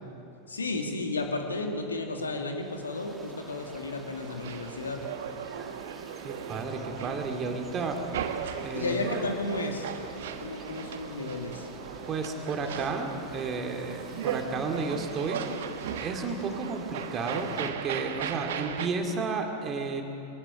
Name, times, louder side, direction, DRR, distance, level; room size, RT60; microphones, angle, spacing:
voice 1, 0.5-5.0 8.7-11.7, left 2 dB, 75° left, 3 dB, 2.3 m, -33 dB
sound 1, 2.6-17.7, right 2 dB, 10° right, 2.0 m, -48 dB
sound 2, 3.3-18.9, right 8 dB, 60° right, 1.3 m, -38 dB
voice 2, 6.2-8.0 8.6-9.1 12.1-15.4 16.0-20.0, right 4 dB, 25° right, 4 dB, 2.4 m, -32 dB
23.5 x 19.0 x 7.1 m, 2.8 s
figure-of-eight pair, 90°, 0 cm